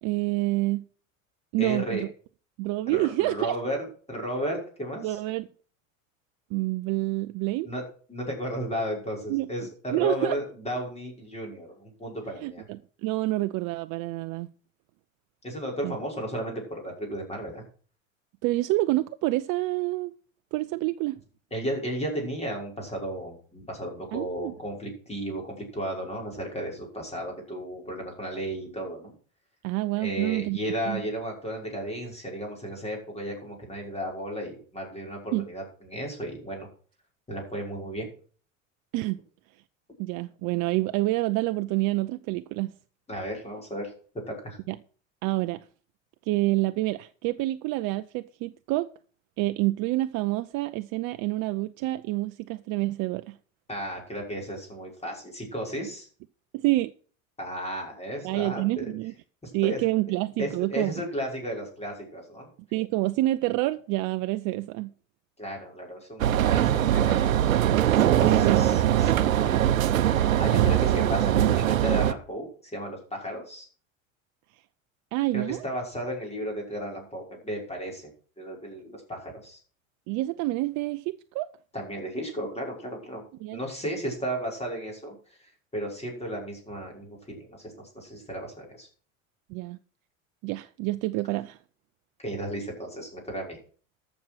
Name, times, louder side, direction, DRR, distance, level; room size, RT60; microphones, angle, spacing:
voice 1, 0.0-0.8 1.5-2.1 2.6-3.6 5.0-5.5 6.5-7.7 9.3-9.5 9.9-10.4 12.4-14.5 15.8-16.0 18.4-20.1 20.5-21.2 24.1-24.5 29.6-30.6 30.9-31.0 35.3-35.5 38.9-39.2 40.0-42.7 44.7-44.8 45.2-45.6 46.3-48.9 49.4-53.4 56.5-56.9 58.2-59.1 59.5-60.9 62.7-64.9 68.2-68.7 75.1-75.6 80.1-81.5 83.4-83.6 89.5-89.8 90.4-91.6, right 18 dB, 50° right, 0.6 m, -27 dB
voice 2, 1.6-2.0 2.9-5.2 7.6-7.8 8.1-12.7 15.4-17.6 21.5-29.1 30.0-36.7 37.3-38.1 43.1-43.9 44.3-44.6 53.7-56.1 57.4-58.9 59.4-59.8 60.4-62.5 65.4-67.5 67.9-73.7 75.3-78.1 78.4-79.6 81.7-83.2 83.5-85.1 85.7-88.9 92.2-93.6, equal, 15° left, 5.8 m, -34 dB
sound 1, 66.2-72.1, right 11 dB, 85° right, 0.8 m, -22 dB
14.0 x 6.4 x 6.3 m
hypercardioid pair, 85°, 39 cm